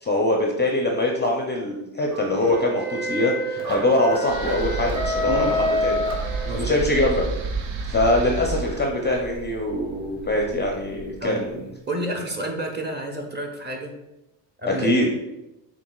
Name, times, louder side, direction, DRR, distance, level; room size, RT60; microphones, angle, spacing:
voice 1, 0.0-6.0 6.5-7.2 7.9-11.6 14.7-15.1, left 1 dB, 20° left, 1 dB, 0.5 m, -23 dB
sound 1, 2.1-6.9, left 1 dB, 45° right, 1.4 m, -27 dB
sound 2, 4.2-11.4, right 4 dB, 60° right, 0.7 m, -31 dB
voice 2, 5.3-5.6 6.4-6.9 11.2-13.9 14.6-15.1, right 1 dB, 20° right, 2 dB, 0.8 m, -30 dB
6.9 x 2.5 x 2.3 m, 0.92 s
supercardioid pair, 80°, 49 cm